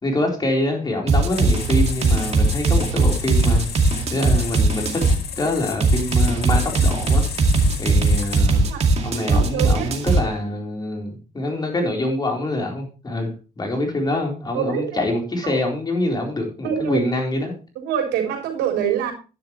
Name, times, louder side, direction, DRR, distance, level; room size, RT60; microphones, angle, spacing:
voice 1, 0.0-3.7 4.1-7.2 7.8-8.6 9.0-17.5, left 1 dB, 25° left, 1 dB, 4.2 m, -25 dB
sound 1, 1.1-5.2 5.8-10.2, right 3 dB, 40° right, 2.3 m, -19 dB
sound 2, 1.3-8.4, left 7 dB, 70° left, 2.1 m, -33 dB
voice 2, 9.3-10.0 14.5-15.0 15.4-15.6 16.6-17.0 17.8-19.1, right 8 dB, 85° right, 3 dB, 3.7 m, -25 dB
11.5 x 10.5 x 3.2 m, 0.33 s
cardioid pair, 110°, 17 cm